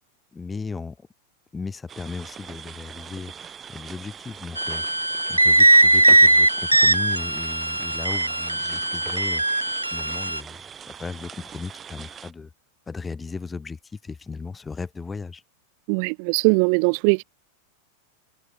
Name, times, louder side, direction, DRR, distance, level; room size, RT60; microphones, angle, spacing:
voice 1, 0.3-1.0 1.5-12.5 12.9-15.4, left 4 dB, 15° left, 3.3 m, -36 dB
sound 1, 1.9-12.3, right 8 dB, 20° right, 4.1 m, -42 dB
sound 2, 4.6-10.4, right 2 dB, 85° right, 1.1 m, -19 dB
voice 2, 15.9-17.2, right 40 dB or more, 45° right, 0.4 m, -20 dB
figure-of-eight pair, 90°, 0 cm